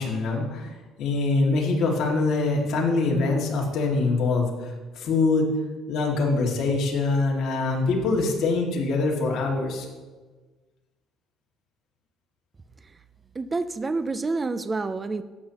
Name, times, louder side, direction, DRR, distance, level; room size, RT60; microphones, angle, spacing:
voice 1, 0.0-5.5 5.9-9.9, left 3 dB, 55° left, -1 dB, 2.0 m, -24 dB
voice 2, 13.4-15.2, right 3 dB, 20° right, 12 dB, 0.3 m, -28 dB
12.0 x 8.6 x 2.9 m, 1.3 s
cardioid pair, 155°, 0 cm